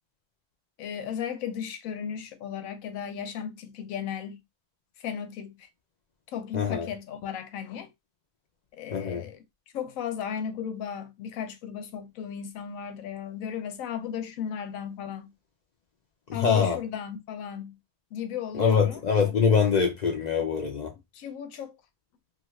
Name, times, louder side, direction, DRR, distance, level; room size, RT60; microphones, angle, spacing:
voice 1, 0.8-4.4 5.0-5.7 6.3-7.9 8.7-9.4 9.7-15.3 16.3-17.8 18.1-19.0 21.1-21.8, left 8 dB, 85° left, 1.0 m, -35 dB
voice 2, 6.5-6.9 8.9-9.2 16.3-16.8 18.5-20.9, left 6 dB, 65° left, 0.4 m, -24 dB
2.7 x 2.4 x 3.0 m
omnidirectional pair, 1.4 m